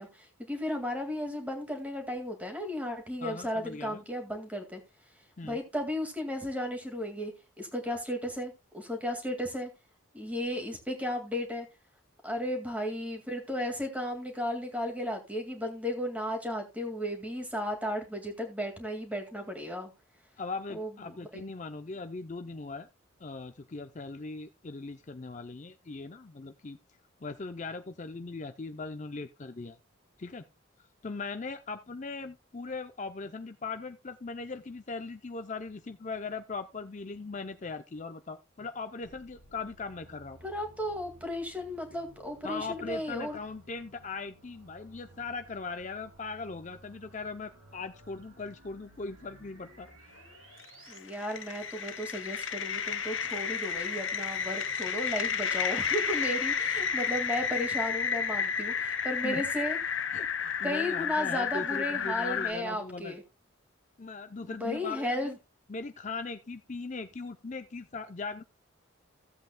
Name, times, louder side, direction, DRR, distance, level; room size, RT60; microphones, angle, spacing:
voice 1, 0.0-4.8 5.4-9.7 10.1-11.7 12.2-19.9 20.7-21.4 40.4-43.4 50.9-59.8 60.6-63.2 64.4-65.4, left 1 dB, 5° right, 2.0 m, -34 dB
voice 2, 3.2-4.0 5.4-5.6 20.4-22.9 23.2-26.8 27.2-29.8 30.2-30.4 30.8-40.4 42.4-50.2 59.2-59.4 60.1-63.2 64.0-65.3 65.7-68.4, left 4 dB, 35° left, 0.5 m, -39 dB
sound 1, 39.0-51.0, right 1 dB, 85° right, 4.1 m, -56 dB
sound 2, 50.6-62.5, left 6 dB, 70° left, 1.0 m, -32 dB
16.0 x 8.0 x 2.2 m
head